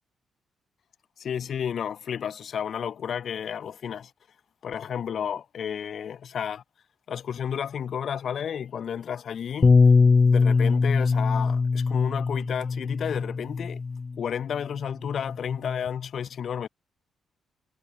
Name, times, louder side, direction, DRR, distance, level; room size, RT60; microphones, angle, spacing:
voice 1, 1.2-4.1 4.6-6.6 7.1-9.7 10.3-13.8 14.2-16.7, left 8 dB, 55° left, 0.9 m, -32 dB
Bass guitar, 9.6-14.1 14.9-15.9, left 4 dB, 30° left, 0.7 m, -22 dB
cardioid pair, 125°, 0 cm